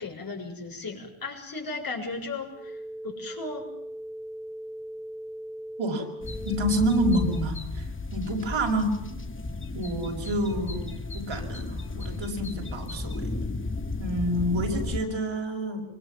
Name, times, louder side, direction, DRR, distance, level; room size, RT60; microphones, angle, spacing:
voice 1, 0.0-3.7, left 3 dB, 45° left, 2 dB, 6.7 m, -36 dB
sound 1, 2.5-7.5, right 1 dB, 5° right, 0.9 m, -39 dB
sound 2, 6.2-15.0, left 3 dB, 25° left, 2.2 m, -34 dB
voice 2, 6.4-8.9 9.7-13.3 14.0-15.8, right 1 dB, 65° right, 2 dB, 6.1 m, -28 dB
26.5 x 25.0 x 7.2 m, 0.77 s
wide cardioid pair, 160°, 49 cm